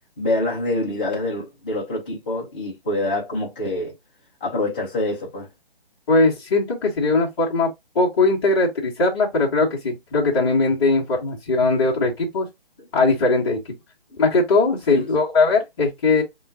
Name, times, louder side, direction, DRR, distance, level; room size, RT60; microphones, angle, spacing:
voice 1, 0.2-3.9 4.4-5.5 12.8-12.9 14.9-15.1, left 1 dB, 10° left, 0.6 m, -26 dB
voice 2, 6.1-7.7 7.9-12.5 12.9-13.6 14.2-16.2, left 3 dB, 25° left, 1.3 m, -20 dB
3.7 x 2.4 x 3.8 m
hypercardioid pair, 165°, 31 cm